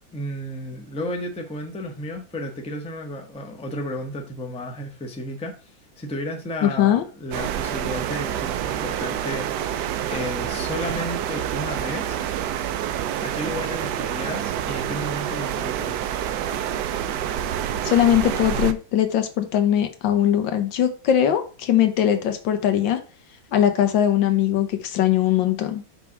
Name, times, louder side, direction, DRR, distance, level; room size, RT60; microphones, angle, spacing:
voice 1, 0.1-5.7 6.0-12.2 13.2-16.1, left 1 dB, 5° left, 0.6 m, -33 dB
voice 2, 6.6-7.0 17.8-23.0 23.5-25.8, left 10 dB, 85° left, 1.6 m, -20 dB
sound 1, 7.3-18.7, right 10 dB, 70° right, 1.1 m, -27 dB
5.8 x 3.6 x 5.7 m
omnidirectional pair, 2.0 m